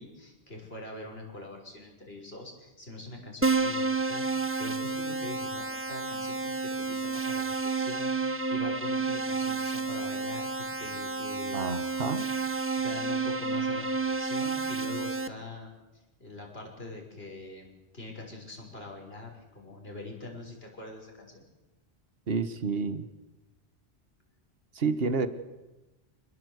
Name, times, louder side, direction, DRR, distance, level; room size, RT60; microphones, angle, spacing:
voice 1, 0.0-11.9 12.8-15.7 16.2-21.5, left 2 dB, 75° left, 1 dB, 6.3 m, -44 dB
Keyboard (musical), 3.4-15.3, right 3 dB, 15° right, 0.8 m, -30 dB
voice 2, 11.5-12.2 22.3-23.0 24.7-25.3, right 4 dB, 70° right, 10 dB, 1.7 m, -29 dB
27.5 x 20.0 x 8.2 m, 1.1 s
omnidirectional pair, 1.0 m